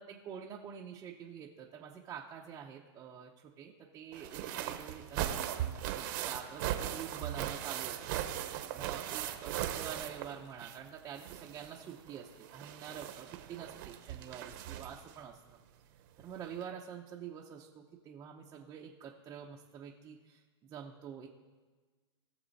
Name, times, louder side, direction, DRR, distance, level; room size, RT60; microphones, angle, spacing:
voice 1, 0.0-15.6 16.2-21.3, right 8 dB, 20° right, -2 dB, 0.7 m, -47 dB
sound 1, 4.1-10.9 11.2-15.1 16.2-16.3 16.6-16.7, right 11 dB, 45° right, 1.0 m, -39 dB
18.5 x 6.8 x 4.1 m, 1.3 s
hypercardioid pair, 150°, 15 cm